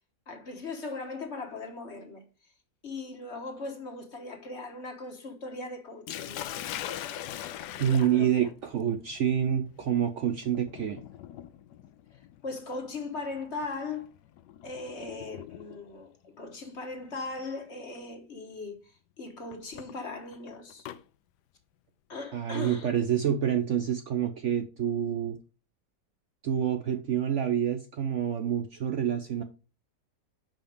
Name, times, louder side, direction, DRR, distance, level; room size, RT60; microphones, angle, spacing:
voice 1, 0.3-2.2 2.8-6.5 7.8-8.5 12.1-14.1 14.6-20.9 22.1-22.9, left 3 dB, 45° left, 1.5 m, -39 dB
Sink (filling or washing), 6.1-16.0 17.1-17.4 17.9-18.0 19.5-21.0, left 12 dB, 85° left, 1.2 m, -42 dB
voice 2, 7.8-11.0 22.3-25.4 26.4-29.4, right 9 dB, 60° right, 0.8 m, -27 dB
5.7 x 5.2 x 5.1 m
omnidirectional pair, 1.8 m